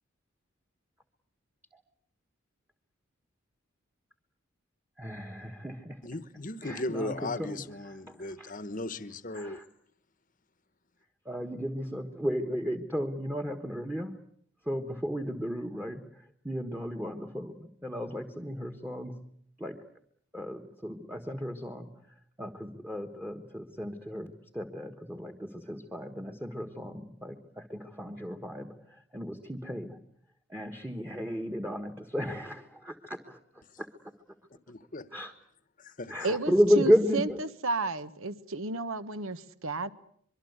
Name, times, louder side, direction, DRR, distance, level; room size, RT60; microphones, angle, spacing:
voice 1, 5.0-6.1 6.6-7.6 8.1-8.5 9.3-9.6 11.2-14.3 14.6-19.3 19.6-19.9 20.3-30.0 30.5-34.1 35.1-35.3 36.1-37.4, equal, 10° right, 1.4 m, -33 dB
voice 2, 6.0-9.6 34.7-35.1 35.8-36.4, left 2 dB, 40° left, 1.1 m, -37 dB
voice 3, 36.2-39.9, right 3 dB, 75° right, 1.4 m, -32 dB
24.5 x 23.5 x 8.1 m
head